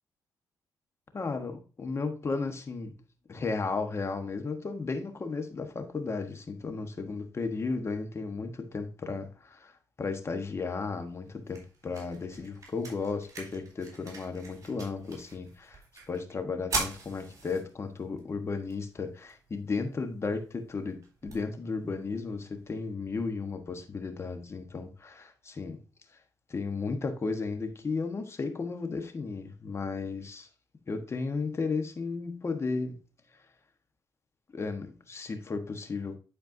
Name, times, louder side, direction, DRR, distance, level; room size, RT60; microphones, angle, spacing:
voice 1, 1.1-3.0 3.3-15.8 16.1-25.8 26.5-30.5 30.9-33.0 34.5-36.2, left 4 dB, 40° left, 1.3 m, -34 dB
sound 1, 10.9-22.9, right 3 dB, 50° right, 3.7 m, -43 dB
10.5 x 4.4 x 2.7 m
cardioid pair, 75°, 7 cm